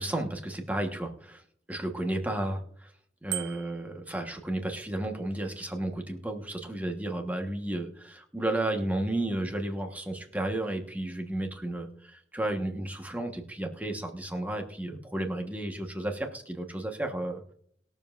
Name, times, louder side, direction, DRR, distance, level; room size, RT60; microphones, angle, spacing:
voice 1, 0.0-1.4 1.7-2.9 3.2-17.5, right 1 dB, 10° right, 3 dB, 1.3 m, -33 dB
Bicycle bell, 3.3-3.9, right 18 dB, 80° right, 0.4 m, -36 dB
21.0 x 7.2 x 2.5 m, 0.65 s
head